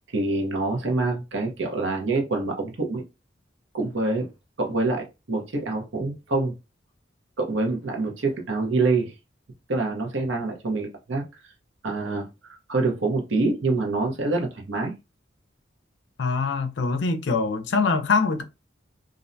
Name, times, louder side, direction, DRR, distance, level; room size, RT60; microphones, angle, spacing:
voice 1, 0.1-3.0 3.7-4.3 4.6-6.5 7.4-9.1 9.7-11.2 11.8-14.9, right 3 dB, 80° right, 0.8 m, -26 dB
voice 2, 16.2-18.4, left 4 dB, 65° left, 0.5 m, -23 dB
2.5 x 2.1 x 2.6 m
head